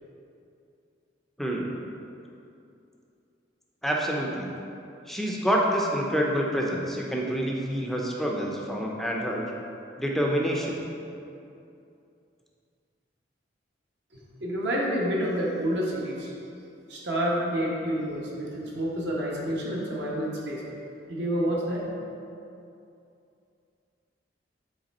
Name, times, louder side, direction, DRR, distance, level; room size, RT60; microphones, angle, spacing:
voice 1, 1.4-1.7 3.8-4.5 5.1-9.4 10.0-10.8, equal, ahead, -2 dB, 0.5 m, -27 dB
voice 2, 14.4-16.3 16.9-20.6 21.1-21.8, equal, 65° right, -4 dB, 1.1 m, -28 dB
7.8 x 3.3 x 4.2 m, 2.7 s
head